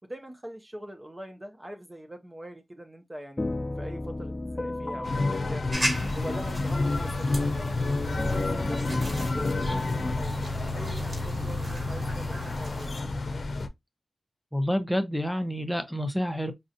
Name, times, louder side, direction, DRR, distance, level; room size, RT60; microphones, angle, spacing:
voice 1, 0.0-3.4 3.8-5.8 6.1-10.3 10.7-12.9, right 1 dB, 25° right, 0.7 m, -43 dB
sound 1, 3.4-13.0, left 2 dB, 30° left, 0.3 m, -36 dB
sound 2, 5.0-13.7, left 2 dB, 75° left, 0.6 m, -29 dB
sound 3, 5.7-13.0, right 1 dB, 40° right, 2.4 m, -38 dB
voice 2, 14.5-16.5, equal, 5° left, 0.8 m, -28 dB
5.3 x 2.4 x 2.7 m
cardioid pair, 55°, 0 cm